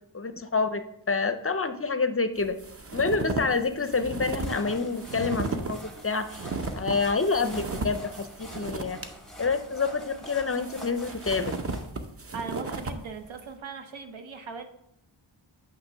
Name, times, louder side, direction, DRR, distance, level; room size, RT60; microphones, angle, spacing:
voice 1, 0.1-2.6 2.9-5.8 6.0-6.5 6.7-9.0 9.4-11.6, left 4 dB, 30° left, 9 dB, 0.5 m, -27 dB
sound 1, 2.4-9.0 9.5-9.6 10.4-13.0, right 3 dB, 30° right, 0.7 m, -35 dB
sound 2, 4.2-11.9, right 1 dB, ahead, 1.0 m, -45 dB
voice 2, 12.3-14.6, right 5 dB, 80° right, 7 dB, 0.9 m, -39 dB
8.6 x 3.0 x 5.6 m, 0.80 s
wide cardioid pair, 100°, 46 cm